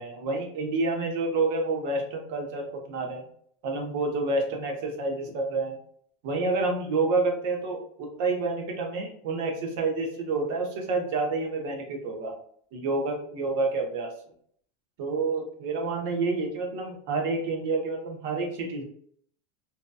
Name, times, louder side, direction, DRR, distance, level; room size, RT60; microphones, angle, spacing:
voice 1, 0.0-3.2 3.6-5.8 6.2-12.3 12.7-14.1 15.0-18.8, right 3 dB, 60° right, 2 dB, 0.8 m, -28 dB
2.7 x 2.2 x 2.2 m, 0.62 s
supercardioid pair, 145°, 0 cm